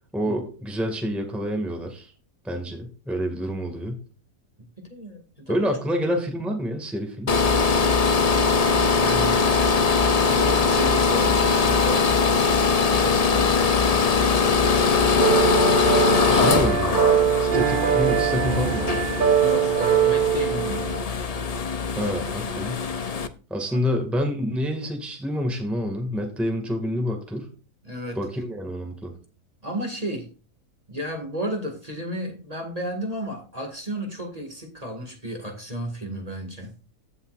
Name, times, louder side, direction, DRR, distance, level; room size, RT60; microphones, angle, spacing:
voice 1, 0.1-2.1 2.4-4.0 5.5-7.3 16.3-16.9 17.4-19.0 21.9-22.8 23.5-27.5 28.2-29.1, equal, ahead, 3 dB, 1.8 m, -27 dB
voice 2, 4.8-5.7 9.0-9.4 10.2-12.1 13.0-15.0 16.3-16.7 19.4-20.9 23.7-23.8 27.8-28.2 29.6-30.3 30.9-36.8, equal, 25° right, 3 dB, 2.1 m, -33 dB
sound 1, 7.3-23.3, left 5 dB, 45° left, 0.5 m, -21 dB
sound 2, 15.2-21.0, right 9 dB, 45° right, 0.7 m, -22 dB
15.5 x 5.7 x 2.5 m, 0.35 s
omnidirectional pair, 1.6 m